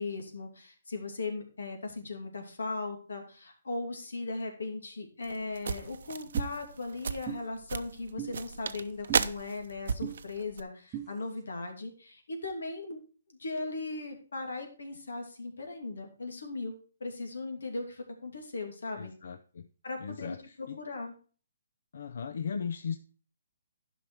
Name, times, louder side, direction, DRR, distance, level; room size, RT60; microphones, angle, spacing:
voice 1, 0.0-13.0 13.3-19.1 19.8-21.1, left 3 dB, 90° left, 4 dB, 2.6 m, -38 dB
sound 1, 5.2-10.6, right 6 dB, 65° right, 0.7 m, -34 dB
sound 2, 6.3-6.5 7.3-7.4 8.2-8.3 9.1-9.2 10.0-10.2 10.9-11.1, right 11 dB, 15° right, 0.9 m, -37 dB
voice 2, 18.9-19.7 20.0-20.8 21.9-23.0, left 6 dB, 65° left, 10 dB, 0.6 m, -37 dB
11.5 x 5.7 x 4.7 m, 0.40 s
hypercardioid pair, 160°, 0 cm